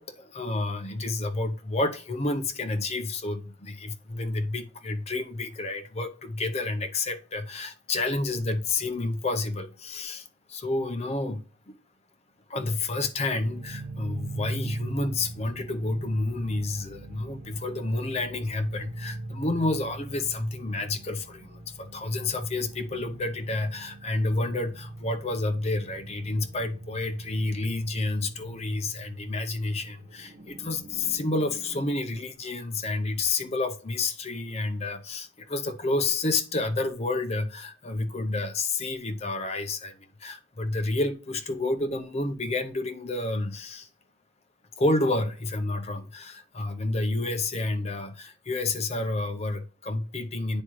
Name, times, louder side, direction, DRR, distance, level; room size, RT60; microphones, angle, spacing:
voice 1, 0.0-11.7 12.5-43.9 44.8-50.6, left 2 dB, 30° left, 0.6 m, -30 dB
sound 1, 13.3-31.9, right 2 dB, 50° right, 0.7 m, -41 dB
9.5 x 3.6 x 3.0 m
head